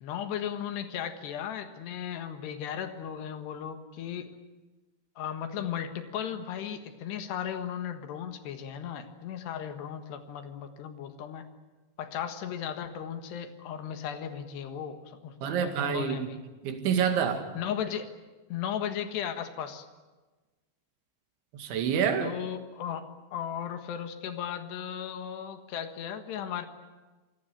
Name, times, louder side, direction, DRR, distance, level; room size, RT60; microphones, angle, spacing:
voice 1, 0.0-4.3 5.2-11.5 12.0-16.4 17.6-18.1 18.5-19.9 22.2-26.7, left 9 dB, 70° left, 9 dB, 3.6 m, -36 dB
voice 2, 15.4-16.3 16.6-17.5 21.5-22.4, right 7 dB, 85° right, 7 dB, 4.5 m, -27 dB
27.5 x 18.0 x 9.1 m, 1.2 s
omnidirectional pair, 5.2 m